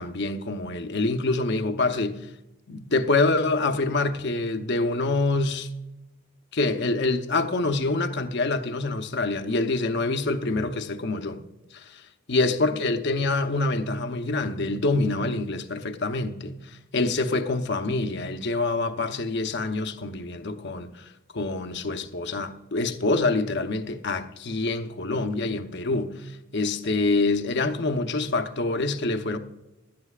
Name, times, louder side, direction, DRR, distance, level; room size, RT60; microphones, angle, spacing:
voice 1, 0.0-2.3 2.7-5.7 6.5-11.4 11.7-12.0 12.3-21.1 21.3-29.4, left 3 dB, 55° left, 0.8 m, -26 dB
18.0 x 12.5 x 2.4 m
head